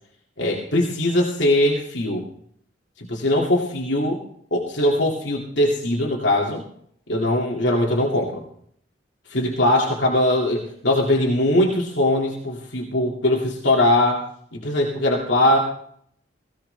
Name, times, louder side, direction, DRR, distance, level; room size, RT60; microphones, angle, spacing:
voice 1, 0.4-2.3 3.0-4.2 4.5-6.6 7.1-8.4 9.3-14.2 14.5-15.6, left 1 dB, 80° left, -2 dB, 2.3 m, -21 dB
18.0 x 15.5 x 3.4 m, 0.64 s
head